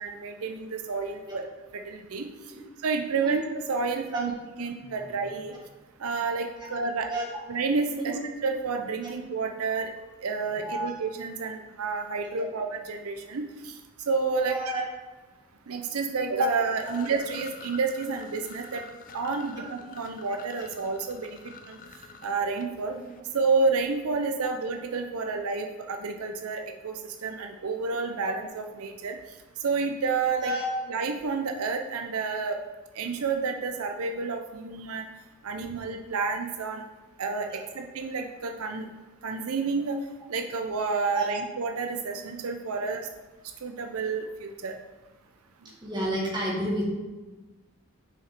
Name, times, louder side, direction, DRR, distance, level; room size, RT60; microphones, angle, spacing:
voice 1, 0.0-1.4 1.9-2.2 2.8-3.4 3.7-4.3 4.6-5.5 6.0-7.1 7.5-8.1 8.4-9.9 10.2-13.7 14.1-14.6 15.7-18.8 19.1-21.4 21.7-21.8 22.2-23.0 23.3-26.9 27.2-29.1 29.6-30.5 30.9-32.6 33.0-35.1 35.4-36.8 37.2-38.8 39.2-40.0 40.3-43.0 43.6-44.8, right 4 dB, 85° right, 5 dB, 0.5 m, -29 dB
voice 2, 4.5-5.1 6.6-6.8 7.1-7.2 8.0-8.1 9.0-9.1 10.6-10.9 12.2-12.5 14.5-14.8 16.9-17.0 19.5-19.7 30.4-30.7 41.1-41.3 45.8-46.9, right 1 dB, 20° right, -4 dB, 1.6 m, -31 dB
sound 1, 16.4-23.2, left 5 dB, 40° left, 0.5 m, -48 dB
5.7 x 4.9 x 4.5 m, 1.2 s
head